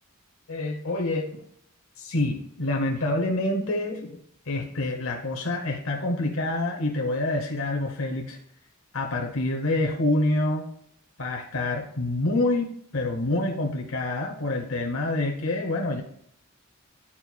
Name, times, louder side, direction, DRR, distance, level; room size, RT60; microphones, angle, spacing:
voice 1, 0.5-1.4 2.0-4.2 4.5-8.4 8.9-10.7 11.2-12.7 12.9-16.0, left 2 dB, 85° left, 2 dB, 0.9 m, -27 dB
11.0 x 4.3 x 2.3 m, 0.67 s
head